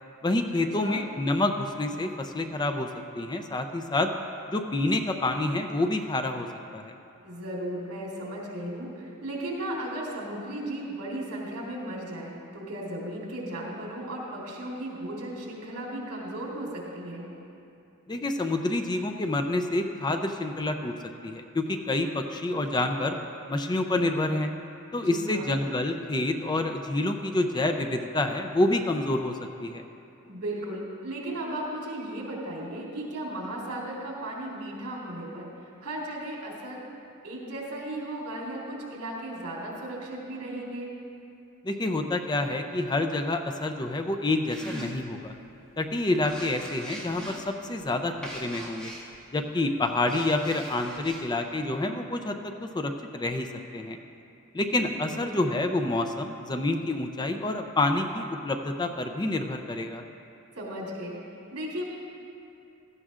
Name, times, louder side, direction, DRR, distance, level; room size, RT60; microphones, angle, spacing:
voice 1, 0.2-2.9 3.1-4.1 4.5-6.5 6.7-6.9 18.1-20.9 21.2-23.2 23.5-24.5 24.9-29.8 41.6-45.3 45.8-48.9 49.3-53.5 53.7-54.0 54.5-60.0, left 2 dB, 20° left, 5 dB, 0.5 m, -28 dB
voice 2, 7.2-17.3 25.0-25.6 30.2-36.8 37.2-40.9 55.0-55.5 60.6-61.2 61.5-61.8, right 1 dB, 75° right, -4 dB, 3.2 m, -36 dB
sound 1, 44.5-45.4 45.8-49.3 49.9-51.2, equal, 5° left, 1.9 m, -42 dB
16.5 x 14.0 x 2.5 m, 2.7 s
head